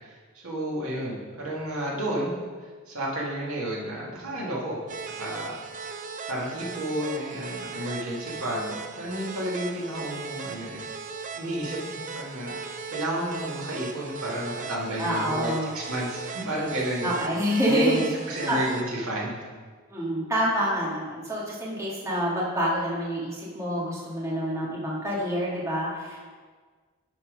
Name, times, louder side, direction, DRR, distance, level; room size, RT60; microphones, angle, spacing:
voice 1, 0.0-2.3 2.6-5.6 6.3-10.8 11.3-17.1 17.6-19.4, right 1 dB, 75° right, -4 dB, 2.3 m, -31 dB
sound 1, 4.9-18.8, right 5 dB, 35° right, 0.4 m, -38 dB
voice 2, 15.0-15.7 17.0-18.0 18.5-18.6 19.9-26.3, equal, 15° right, -6 dB, 1.9 m, -27 dB
10.5 x 4.5 x 5.2 m, 1.5 s
head